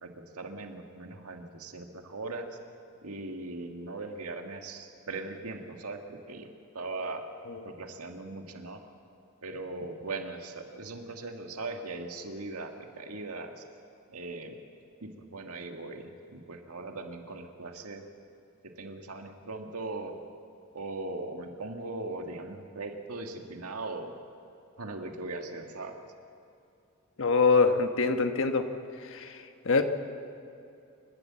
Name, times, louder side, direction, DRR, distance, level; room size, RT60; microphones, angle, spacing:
voice 1, 0.0-2.6 3.0-6.5 6.7-7.3 7.6-8.8 9.4-13.6 14.1-14.6 15.0-18.0 18.8-20.2 20.7-24.1 24.8-26.0, right 2 dB, 80° right, 4 dB, 1.8 m, -39 dB
voice 2, 27.2-28.7 29.0-29.8, left 4 dB, 65° left, 7 dB, 1.3 m, -25 dB
28.0 x 12.5 x 7.5 m, 2.6 s
head